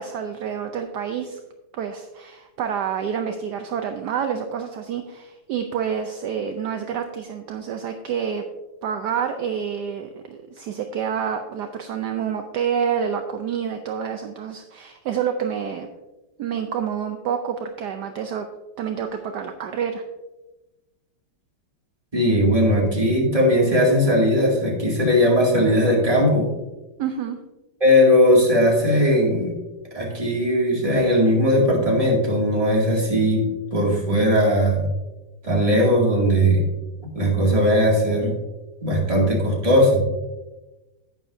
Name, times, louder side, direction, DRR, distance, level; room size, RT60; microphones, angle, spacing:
voice 1, 0.0-1.4 1.7-8.4 8.8-15.9 16.4-18.5 18.8-20.0 27.0-27.4, right 7 dB, 70° right, 6 dB, 1.1 m, -28 dB
voice 2, 22.1-26.5 27.8-29.5 29.9-34.8 35.4-36.6 37.1-38.3 38.8-40.0, equal, 20° right, -3 dB, 2.3 m, -18 dB
10.5 x 9.4 x 2.7 m, 1.1 s
omnidirectional pair, 2.1 m